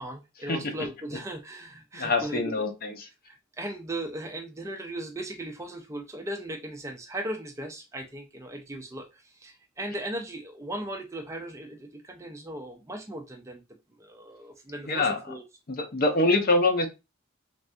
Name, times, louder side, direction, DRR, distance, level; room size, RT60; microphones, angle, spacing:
voice 1, 0.0-2.4 3.3-13.6 14.0-15.4, right 1 dB, 15° right, 0.4 m, -37 dB
voice 2, 1.9-2.9 14.9-15.2 15.7-16.9, left 2 dB, 45° left, 0.6 m, -24 dB
3.3 x 2.4 x 2.6 m
head